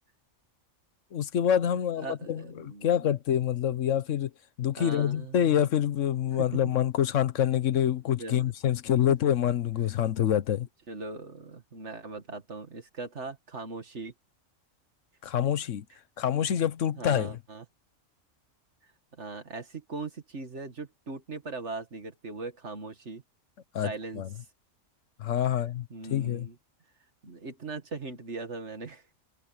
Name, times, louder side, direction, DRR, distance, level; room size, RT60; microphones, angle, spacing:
voice 1, 1.1-4.3 4.6-10.7 15.2-15.8 16.2-17.3 23.7-24.3 25.2-26.5, left 10 dB, 75° left, 1.2 m, -26 dB
voice 2, 2.0-3.2 4.8-5.6 6.3-6.7 8.2-8.5 10.9-14.1 17.0-17.6 19.2-23.2 23.8-24.2 25.4-25.6 25.9-26.6 27.2-29.0, right 3 dB, 60° right, 2.4 m, -40 dB
omnidirectional pair, 1.3 m